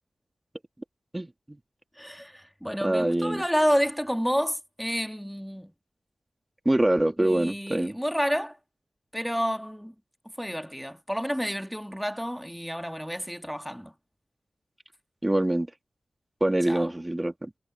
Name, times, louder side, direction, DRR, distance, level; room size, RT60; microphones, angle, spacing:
voice 1, 2.0-5.7 7.2-8.6 9.1-9.9 10.4-13.9 16.6-16.9, equal, ahead, 1.5 m, -29 dB
voice 2, 2.8-3.4 6.6-7.9 15.2-15.7 16.4-17.5, right 1 dB, 20° right, 1.5 m, -24 dB
cardioid pair, 55°, 0 cm